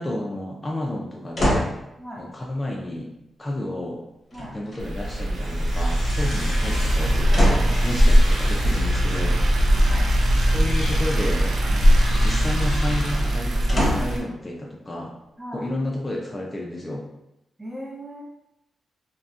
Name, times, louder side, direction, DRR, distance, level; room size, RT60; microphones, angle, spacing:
voice 1, 0.0-1.7 2.2-3.1 3.4-4.0 4.5-7.2 7.8-9.9 10.5-15.1 15.5-17.1, left 1 dB, 25° left, -2 dB, 0.4 m, -31 dB
sound 1, 1.4-1.8 4.3-5.0 6.0-6.4 7.3-7.8 11.3-11.9 13.7-14.2 14.9-15.0, equal, 45° left, 0.9 m, -25 dB
voice 2, 2.0-2.3 4.3-4.6 7.6-7.8 9.8-10.1 15.4-15.7 17.6-18.2, equal, 15° right, -3 dB, 0.7 m, -38 dB
sound 2, 4.8-14.2, equal, 80° right, 0.4 m, -20 dB
sound 3, 5.4-7.2 7.6-9.2 9.9-10.1 10.5-11.1 11.8-13.3, left 2 dB, 85° left, 0.4 m, -39 dB
2.5 x 2.1 x 2.4 m, 0.87 s
cardioid pair, 70°, 0 cm